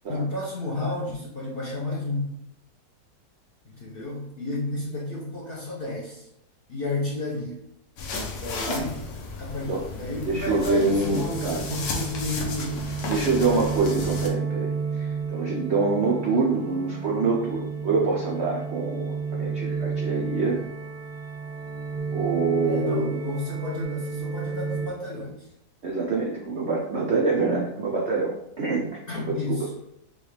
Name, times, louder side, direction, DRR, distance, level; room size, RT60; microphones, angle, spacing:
voice 1, 0.1-2.3 3.7-6.3 6.7-7.6 8.4-9.0 9.4-12.9 22.6-25.4 29.1-29.7, left 2 dB, 55° left, -4 dB, 0.6 m, -31 dB
sound 1, 8.0-14.3, left 3 dB, 80° left, 1.5 m, -34 dB
voice 2, 10.3-11.6 13.1-20.6 22.1-23.2 25.8-29.6, right 3 dB, 75° right, -2 dB, 0.6 m, -26 dB
sound 2, 11.1-24.9, right 5 dB, 5° right, 0.7 m, -32 dB
6.2 x 2.3 x 3.3 m, 0.79 s
omnidirectional pair, 2.0 m